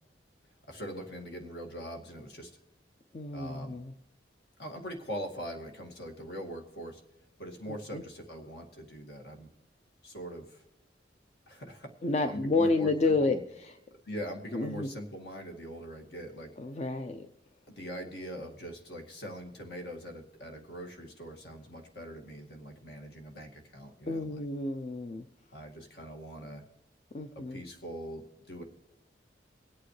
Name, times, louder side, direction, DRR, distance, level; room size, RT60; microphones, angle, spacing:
voice 1, 0.7-2.5 3.3-3.8 4.6-7.0 7.4-9.5 10.0-10.6 11.5-11.9 12.3-13.4 14.1-16.5 17.7-24.4 25.5-26.6 27.3-28.6, equal, 65° left, 3 dB, 2.1 m, -42 dB
voice 2, 3.1-3.9 7.7-8.0 12.0-13.7 14.5-14.9 16.6-17.3 24.1-25.2 27.1-27.6, left 3 dB, 40° left, 7 dB, 0.5 m, -30 dB
24.5 x 8.6 x 3.2 m, 0.94 s
head